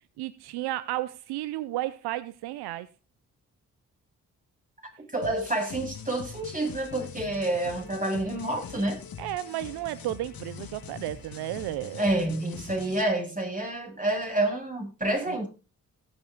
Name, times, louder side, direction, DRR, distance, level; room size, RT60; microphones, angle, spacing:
voice 1, 0.2-2.9 9.2-12.1 15.3-15.4, right 15 dB, 85° right, 0.6 m, -33 dB
voice 2, 5.1-9.0 12.0-15.5, right 1 dB, 20° right, 7.2 m, -28 dB
sound 1, 5.2-13.0, left 7 dB, 65° left, 1.7 m, -43 dB
17.5 x 7.0 x 4.0 m
hypercardioid pair, 40°, 38 cm